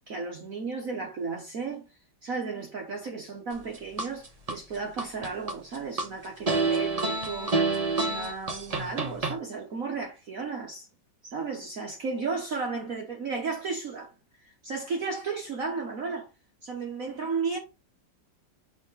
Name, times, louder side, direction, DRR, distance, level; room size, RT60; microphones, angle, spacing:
voice 1, 0.1-1.9 2.2-7.6 8.0-10.9 11.2-14.1 14.6-16.3 16.6-17.6, right 4 dB, 50° right, 1.4 m, -34 dB
sound 1, 3.5-4.6 5.0-6.1 6.5-9.4, right 3 dB, 30° right, 0.8 m, -27 dB
5.1 x 3.8 x 5.4 m
omnidirectional pair, 2.1 m